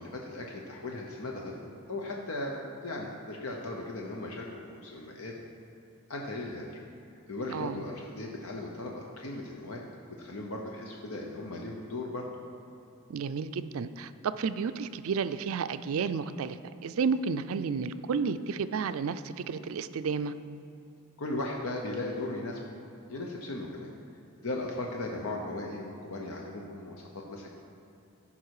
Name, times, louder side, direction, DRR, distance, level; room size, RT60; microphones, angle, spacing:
voice 1, 0.0-5.4 6.1-6.8 7.3-12.3 21.2-22.8 23.1-23.9 24.4-27.5, left 2 dB, 80° left, 0 dB, 0.9 m, -37 dB
voice 2, 13.1-20.3, right 5 dB, 75° right, 12 dB, 0.4 m, -32 dB
14.5 x 5.6 x 4.8 m, 2.8 s
head